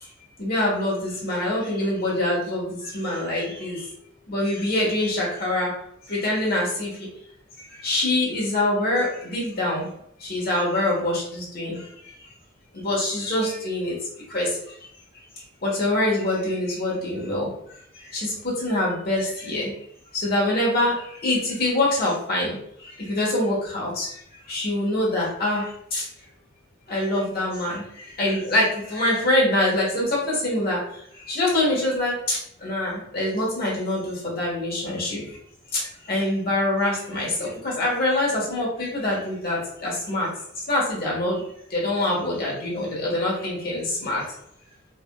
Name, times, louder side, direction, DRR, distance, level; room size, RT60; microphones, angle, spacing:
voice 1, 0.4-3.8 4.3-5.7 6.1-6.9 7.8-9.9 10.2-11.8 12.7-13.9 14.3-14.5 15.6-17.5 18.1-19.7 20.1-20.9 21.2-22.5 23.1-24.1 24.5-25.7 25.9-26.0 26.9-27.8 28.2-30.8 31.3-35.2 36.1-40.3 40.7-41.4 41.7-44.2, left 1 dB, 50° left, -5 dB, 1.3 m, -24 dB
3.3 x 2.6 x 2.3 m, 0.70 s
head